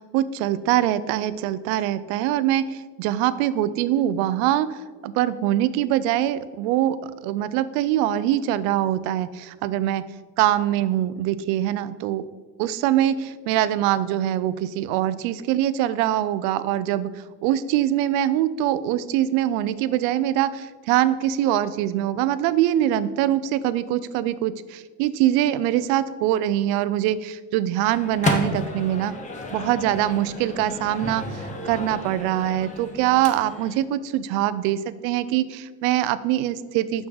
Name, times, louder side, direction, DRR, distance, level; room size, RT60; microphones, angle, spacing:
voice 1, 0.1-4.7 5.0-7.0 7.2-10.1 10.4-12.3 12.6-17.1 17.4-29.1 29.5-31.2 31.6-37.1, right 12 dB, 80° right, 15 dB, 0.5 m, -23 dB
Microwave oven, 27.8-33.8, left 2 dB, 20° left, 0.6 m, -32 dB
6.2 x 6.0 x 3.9 m, 1.4 s
cardioid pair, 150°, 37 cm